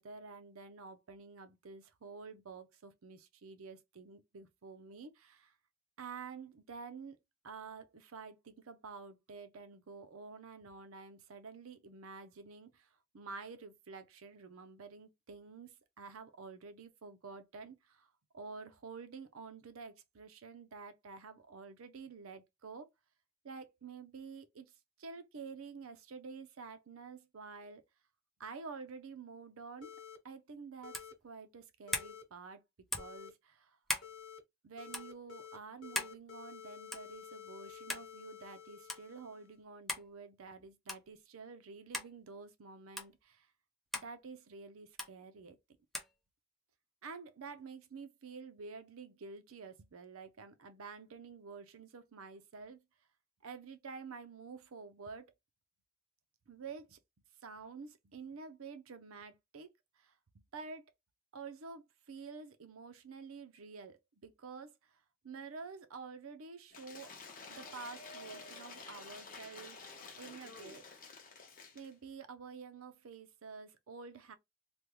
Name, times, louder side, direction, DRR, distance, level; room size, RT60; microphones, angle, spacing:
voice 1, 0.0-5.5 6.0-7.2 7.4-22.9 23.4-24.7 25.0-27.8 28.4-29.9 30.2-32.6 33.0-33.8 34.6-43.5 43.9-45.6 47.0-52.8 53.4-55.3 56.5-57.0 57.4-59.7 60.0-60.8 61.3-67.1 67.5-69.9 70.2-71.1 71.7-74.3, right 4 dB, 85° right, 0.6 m, -49 dB
sound 1, 29.8-30.2 30.8-31.1 31.9-32.2 33.0-33.3 34.0-34.4 34.8-35.6 35.8-39.6, left 8 dB, 70° left, 1.1 m, -51 dB
sound 2, 30.9-31.2 31.9-32.1 32.9-33.2 33.9-34.1 34.9-35.1 36.0-36.2 36.9-37.1 37.9-38.1 38.9-39.0 39.9-40.1 40.9-41.1 41.9-42.1 43.0-43.1 43.9-44.1 45.0-45.1 45.9-46.1, left 1 dB, ahead, 0.4 m, -38 dB
Cheering / Applause / Crowd, 66.7-71.9, left 4 dB, 40° left, 0.7 m, -50 dB
3.4 x 2.2 x 3.0 m
head